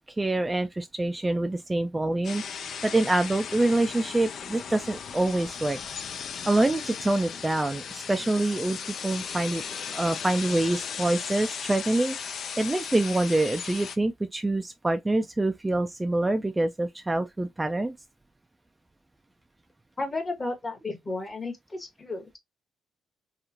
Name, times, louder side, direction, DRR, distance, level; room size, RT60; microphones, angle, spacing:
voice 1, 0.2-5.8 6.5-8.8 9.0-9.6 9.9-17.9, right 2 dB, 15° right, 0.3 m, -26 dB
sound 1, 2.2-14.0, left 7 dB, 60° left, 0.4 m, -36 dB
voice 2, 20.0-22.4, left 2 dB, 30° left, 1.0 m, -33 dB
3.0 x 2.4 x 2.5 m
cardioid pair, 90°, 0 cm